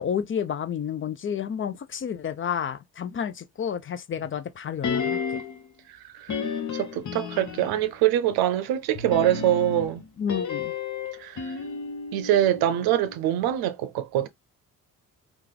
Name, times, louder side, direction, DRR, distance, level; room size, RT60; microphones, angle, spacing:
voice 1, 0.0-5.4 10.2-10.7, left 8 dB, 35° left, 0.4 m, -30 dB
sound 1, 4.8-5.7 6.3-7.9 8.9-13.2 13.4-13.5, left 6 dB, 55° left, 1.0 m, -32 dB
voice 2, 6.7-10.0 11.2-11.5 12.1-14.3, right 12 dB, 80° right, 0.6 m, -24 dB
3.2 x 2.4 x 3.7 m
supercardioid pair, 55°, 36 cm